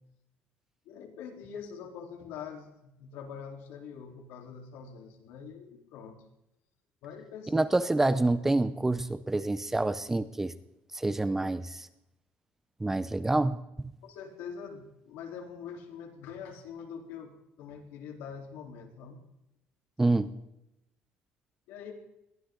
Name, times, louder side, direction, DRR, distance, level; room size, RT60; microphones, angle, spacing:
voice 1, 0.9-6.2 7.0-7.6 14.0-17.3 17.6-19.2 21.7-21.9, left 7 dB, 75° left, 2 dB, 3.9 m, -44 dB
voice 2, 7.5-10.5 10.9-11.9 12.8-13.6 20.0-20.3, right 2 dB, 10° right, 13 dB, 0.7 m, -27 dB
21.5 x 16.0 x 4.0 m, 0.85 s
cardioid pair, 155°, 4 cm